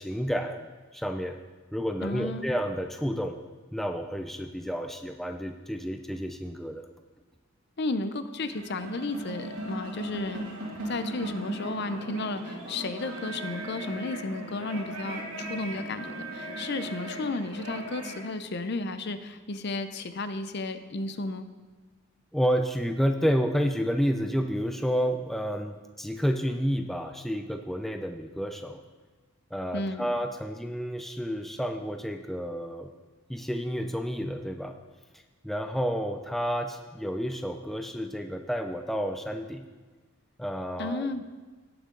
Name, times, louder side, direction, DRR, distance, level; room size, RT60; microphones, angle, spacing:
voice 1, 0.0-1.4 1.7-3.4 3.7-6.9 22.3-28.8 29.5-32.9 33.3-34.7 35.4-39.7 40.4-41.1, equal, ahead, 5 dB, 0.4 m, -30 dB
voice 2, 2.0-2.5 7.8-10.5 10.8-21.5 29.7-30.1 40.8-41.2, left 2 dB, 50° left, 10 dB, 0.6 m, -33 dB
sound 1, 8.4-18.2, right 1 dB, 70° right, 2.3 m, -38 dB
17.5 x 6.5 x 3.8 m, 1.3 s
head